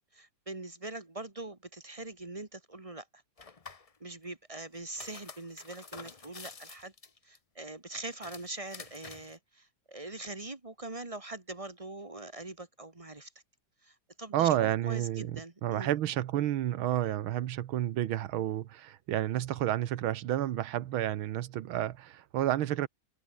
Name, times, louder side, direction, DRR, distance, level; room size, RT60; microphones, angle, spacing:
voice 1, 0.1-3.1 4.0-6.9 7.2-13.3 13.8-15.9, right 2 dB, 20° right, 1.3 m, -43 dB
sound 1, 3.4-3.9 4.8-7.4 8.1-9.3, left 4 dB, 35° left, 0.5 m, -48 dB
voice 2, 14.3-22.9, right 12 dB, 80° right, 1.8 m, -30 dB
omnidirectional pair, 2.3 m